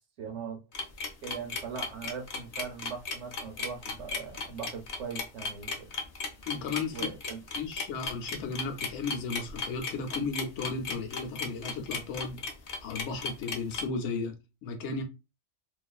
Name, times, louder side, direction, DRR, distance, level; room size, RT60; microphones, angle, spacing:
voice 1, 0.2-0.6 1.2-5.9 6.9-7.4, right 6 dB, 80° right, 1.0 m, -40 dB
sound 1, 0.7-13.8, left 3 dB, 60° left, 0.4 m, -35 dB
voice 2, 6.5-7.1 7.6-12.4 12.8-15.0, left 4 dB, 75° left, 0.9 m, -35 dB
2.5 x 2.4 x 2.2 m
omnidirectional pair, 1.2 m